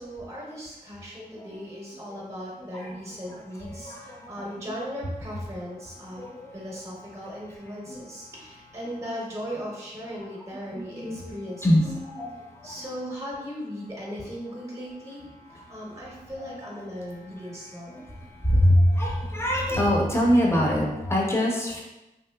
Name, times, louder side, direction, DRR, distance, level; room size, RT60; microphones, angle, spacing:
voice 1, 0.0-6.2 6.5-11.7 12.6-15.2 15.5-18.0, equal, 20° right, -4 dB, 0.7 m, -37 dB
voice 2, 2.7-4.6 5.9-6.8 7.2-8.2 10.2-12.8 15.4-21.8, equal, 15° left, -2 dB, 0.6 m, -27 dB
2.9 x 2.8 x 2.3 m, 0.99 s
wide cardioid pair, 85°, 15 cm